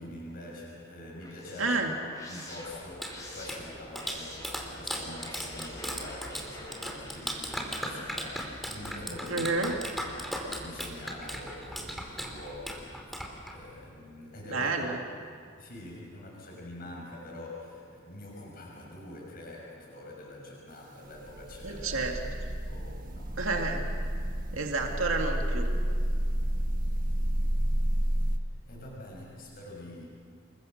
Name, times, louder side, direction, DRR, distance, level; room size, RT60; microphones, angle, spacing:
voice 1, 0.0-9.6 10.0-14.9 15.6-22.0 22.6-23.4 28.7-30.1, left 1 dB, 50° left, -3 dB, 6.2 m, -45 dB
sound 1, 1.0-9.1, left 1 dB, 15° left, 5.6 m, -48 dB
voice 2, 1.6-1.9 9.3-9.7 14.5-15.0 21.6-22.1 23.4-23.9 24.5-25.7, right 3 dB, 80° right, 2 dB, 2.2 m, -29 dB
Clapping, 2.7-13.8, equal, ahead, 3.0 m, -38 dB
sound 2, 21.0-28.4, equal, 45° right, 1.3 m, -30 dB
28.0 x 23.0 x 6.5 m, 2.2 s
head